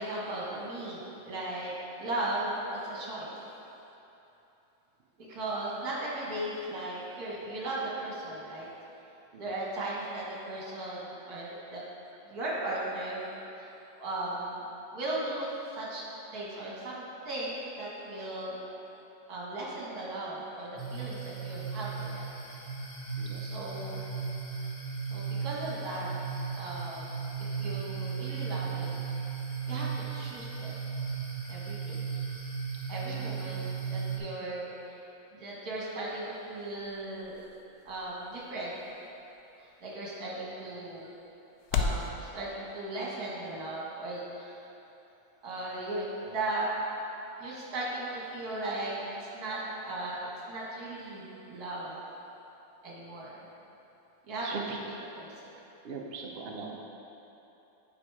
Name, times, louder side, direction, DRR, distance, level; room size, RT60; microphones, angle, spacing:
voice 1, 0.0-1.7 2.0-3.3 5.2-8.7 9.4-11.8 12.2-13.3 13.6-13.7 14.0-14.6 14.9-16.0 16.3-18.6 19.3-22.3 23.4-24.0 25.1-26.1 26.5-29.0 29.7-30.8 31.5-32.0 32.9-35.0 35.3-37.4 37.9-38.8 39.6-41.1 41.7-44.6 45.4-46.7 47.4-52.0 52.8-53.4 54.2-54.5 54.8-54.9 55.1-55.3, right 2 dB, 50° right, -5 dB, 2.0 m, -37 dB
voice 2, 12.9-13.4 18.7-18.8 23.2-23.6 33.1-33.3 43.2-43.3 49.3-49.5 54.4-54.8 55.8-56.8, right 4 dB, 80° right, -1 dB, 0.5 m, -42 dB
sound 1, 20.8-34.2, right 6 dB, 20° left, 1.0 m, -36 dB
sound 2, 35.8-42.1, left 5 dB, 75° left, 0.9 m, -39 dB
8.8 x 4.9 x 4.8 m, 3.0 s
omnidirectional pair, 2.1 m